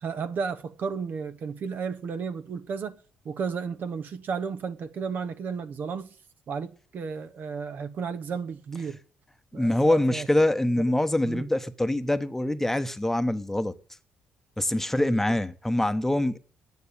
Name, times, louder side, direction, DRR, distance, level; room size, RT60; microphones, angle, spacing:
voice 1, 0.0-3.0 3.2-6.1 6.5-9.0 9.5-10.3 11.2-11.5, right 5 dB, 60° right, 1.0 m, -33 dB
voice 2, 9.5-13.7 14.6-16.4, left 1 dB, 10° left, 1.0 m, -24 dB
9.5 x 8.8 x 8.6 m
supercardioid pair, 65°, 4 cm